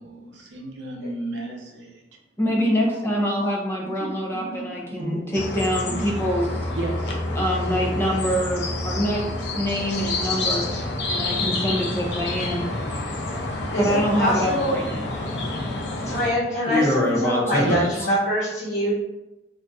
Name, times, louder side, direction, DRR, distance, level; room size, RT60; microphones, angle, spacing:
voice 1, 0.0-2.0 2.5-3.2 3.8-5.4 5.9-6.2 6.7-7.2 10.2-10.5 13.6-14.1 14.5-14.8 16.0-16.9 17.6-18.1, right 2 dB, 85° right, 0 dB, 0.7 m, -35 dB
voice 2, 2.4-6.5 7.4-9.3 9.5-10.7 11.1-12.7 13.8-15.1 16.7-17.9, equal, 15° left, -2 dB, 0.4 m, -25 dB
sound 1, 5.3-16.3, left 2 dB, 70° left, 0.5 m, -28 dB
voice 3, 13.7-14.8 16.1-18.9, equal, 55° left, -10 dB, 1.4 m, -24 dB
2.5 x 2.4 x 3.2 m, 0.95 s
head